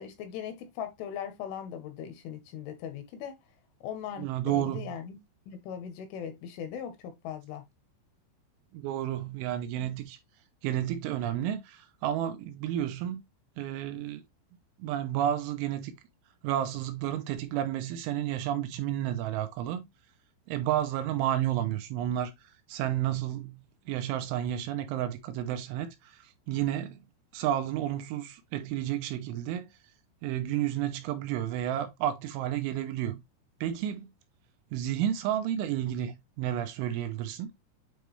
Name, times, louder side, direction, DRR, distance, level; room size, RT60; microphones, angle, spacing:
voice 1, 0.0-3.4 3.8-5.2 5.5-7.7, left 8 dB, 75° left, 3.5 m, -39 dB
voice 2, 4.2-5.0 8.7-10.2 10.6-13.2 13.6-14.2 14.8-16.0 16.4-19.9 20.5-27.0 27.3-29.7 30.2-33.2 33.6-34.1 34.7-37.5, right 11 dB, 80° right, 3.0 m, -31 dB
9.0 x 3.3 x 3.3 m
omnidirectional pair, 5.8 m